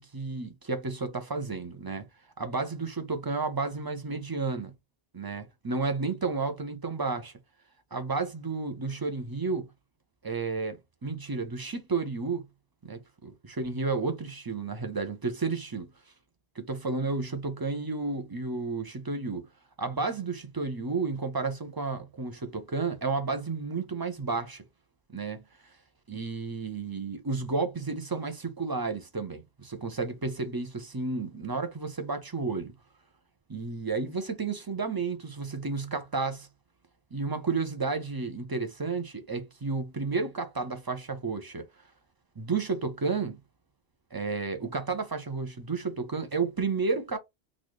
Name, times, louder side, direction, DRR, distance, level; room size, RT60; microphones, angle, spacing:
voice 1, 0.0-2.0 2.4-4.7 5.1-7.3 7.9-9.7 10.2-12.4 12.8-15.9 16.6-19.5 19.8-24.6 25.1-25.4 26.1-32.7 33.5-36.5 37.1-41.6 42.4-43.4 44.1-47.2, right 4 dB, 30° right, 0.5 m, -32 dB
4.0 x 2.5 x 3.0 m
omnidirectional pair, 1.1 m